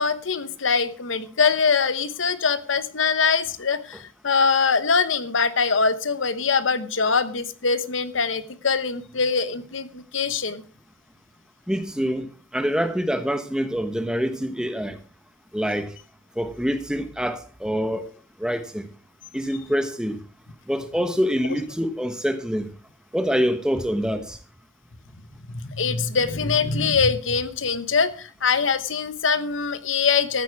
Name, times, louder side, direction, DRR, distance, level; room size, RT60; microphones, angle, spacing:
voice 1, 0.0-10.6 25.6-30.4, left 5 dB, 85° left, 1.1 m, -23 dB
voice 2, 11.7-15.0 15.5-15.9 16.4-18.1 18.4-18.9 19.3-20.2 20.7-22.7 23.1-24.4, equal, 5° right, 1.0 m, -25 dB
13.0 x 9.4 x 4.7 m
head